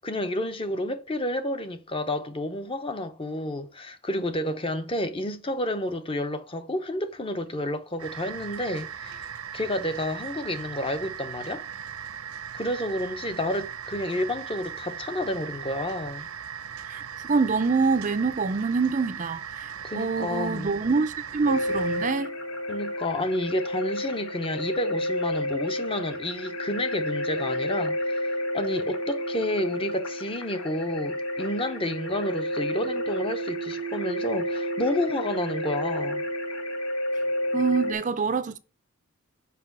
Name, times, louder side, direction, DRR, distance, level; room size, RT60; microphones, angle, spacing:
voice 1, 0.0-11.7 12.5-16.3 19.8-20.8 22.7-36.3, left 1 dB, 25° left, 0.7 m, -30 dB
sound 1, 8.0-22.1, right 8 dB, 80° right, 0.7 m, -38 dB
voice 2, 17.3-22.3 37.5-38.6, right 4 dB, 35° right, 0.4 m, -25 dB
sound 2, 21.5-37.9, equal, 85° left, 1.5 m, -30 dB
5.9 x 5.1 x 6.0 m
head